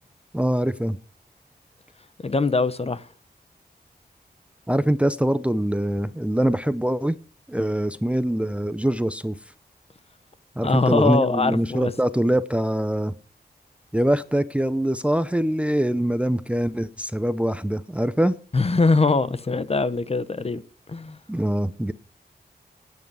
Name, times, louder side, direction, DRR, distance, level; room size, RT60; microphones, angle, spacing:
voice 1, 0.3-1.0 4.7-7.1 7.5-9.3 10.6-13.1 13.9-18.3 21.3-21.9, right 1 dB, 5° right, 0.7 m, -23 dB
voice 2, 2.2-3.1 10.6-11.9 18.5-20.6 20.9-21.2, left 3 dB, 35° left, 0.9 m, -22 dB
13.5 x 9.6 x 4.8 m
wide cardioid pair, 95°, 17 cm